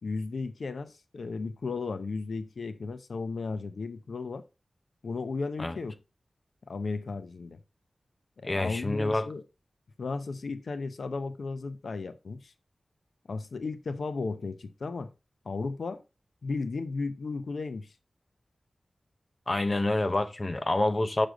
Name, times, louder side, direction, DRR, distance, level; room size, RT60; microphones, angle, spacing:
voice 1, 0.0-4.4 5.0-6.0 6.7-7.6 8.4-9.4 10.0-12.5 13.3-15.1 15.4-16.0 16.4-17.9, left 4 dB, 80° left, 0.7 m, -35 dB
voice 2, 8.4-9.3 19.5-21.3, left 2 dB, 30° left, 0.8 m, -27 dB
6.8 x 6.3 x 3.6 m
wide cardioid pair, 90°, 0 cm